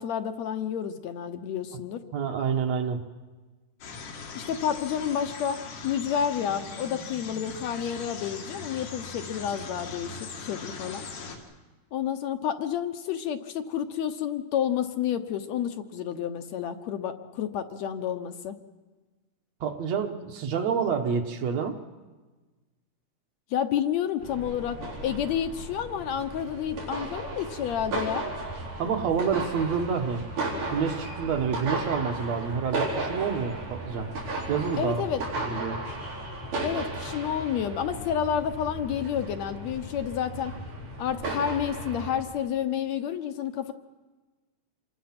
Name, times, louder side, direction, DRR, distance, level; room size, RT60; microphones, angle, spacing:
voice 1, 0.0-2.0 4.4-11.1 11.9-18.6 23.5-24.8 25.0-28.3 34.8-35.2 36.6-40.5 41.0-43.7, left 9 dB, 70° left, 8 dB, 2.0 m, -30 dB
voice 2, 2.1-3.0 19.6-21.8 28.8-30.2 30.7-34.1 34.5-35.0 35.5-35.8, right 6 dB, 65° right, 5 dB, 2.4 m, -28 dB
sound 1, 3.8-11.4, left 4 dB, 90° left, 3.7 m, -40 dB
sound 2, 24.2-42.2, right 2 dB, 90° right, 6.0 m, -35 dB
27.5 x 23.5 x 6.0 m, 1.3 s
omnidirectional pair, 3.5 m